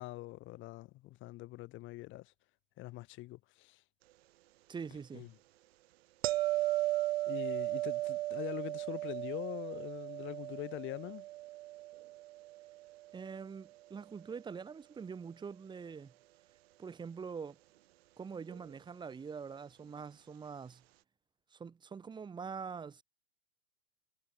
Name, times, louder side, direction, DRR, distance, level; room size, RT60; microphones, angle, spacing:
voice 1, 0.0-2.3 2.8-3.8 5.1-5.3 7.3-11.3, left 18 dB, 25° left, 4.8 m, -43 dB
voice 2, 4.7-5.3 13.1-16.1 16.8-17.6 18.2-20.8 21.5-23.0, right 6 dB, 10° right, 4.3 m, -44 dB
sound 1, 6.2-13.2 18.5-18.7, right 17 dB, 45° right, 0.9 m, -36 dB
hypercardioid pair, 160°, 43 cm